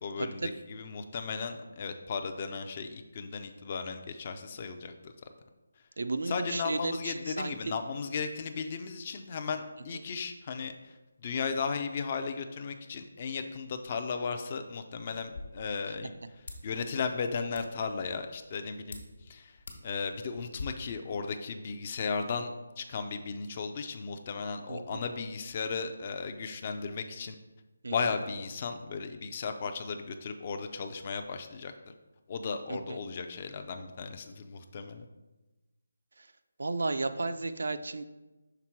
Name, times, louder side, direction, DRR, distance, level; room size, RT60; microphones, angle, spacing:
voice 1, 0.0-5.1 6.2-22.5 22.8-27.4 27.9-31.7 32.3-35.1, left 5 dB, 30° left, 7 dB, 0.4 m, -36 dB
voice 2, 6.0-7.5 24.7-25.0 27.8-27.9 32.7-33.0 36.2-36.3 36.6-38.0, right 3 dB, 75° right, 10 dB, 0.4 m, -33 dB
sound 1, 15.1-20.6, left 3 dB, 65° left, 1.1 m, -48 dB
5.9 x 3.6 x 4.5 m, 1.1 s
figure-of-eight pair, 165°, 0 cm